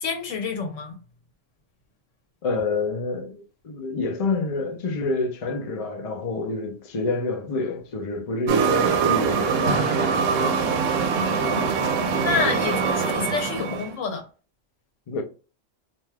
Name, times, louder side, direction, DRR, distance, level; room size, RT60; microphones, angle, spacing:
voice 1, 0.0-1.0 11.2-11.7 12.2-14.2, left 5 dB, 85° left, 1.1 m, -28 dB
voice 2, 2.4-10.6 13.7-13.8 15.1-15.2, left 3 dB, 45° left, 0.5 m, -28 dB
sound 1, 8.5-13.9, right 5 dB, 85° right, 0.9 m, -23 dB
2.6 x 2.2 x 3.2 m
omnidirectional pair, 1.3 m